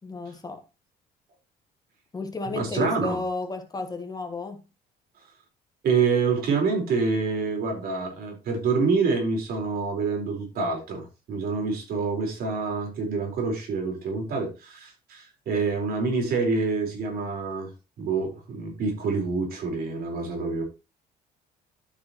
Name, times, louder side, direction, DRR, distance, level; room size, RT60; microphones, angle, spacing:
voice 1, 0.0-0.6 2.1-4.6, left 3 dB, 20° left, 1.5 m, -33 dB
voice 2, 2.5-3.2 5.8-17.7 18.0-20.6, right 4 dB, 65° right, 4.5 m, -27 dB
13.0 x 6.0 x 3.1 m
cardioid pair, 110°, 17 cm